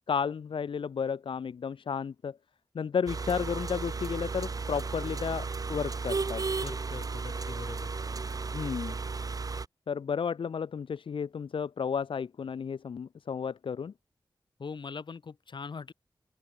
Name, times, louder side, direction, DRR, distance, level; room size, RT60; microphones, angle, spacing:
voice 1, 0.1-2.4 2.7-6.4 8.5-9.0 9.9-13.9, left 6 dB, 90° left, 1.0 m, -32 dB
sound 1, 3.1-9.6, right 4 dB, 45° right, 1.2 m, -34 dB
voice 2, 6.6-7.9 14.6-15.9, left 5 dB, 65° left, 4.3 m, -42 dB
open air
wide cardioid pair, 125°, 9 cm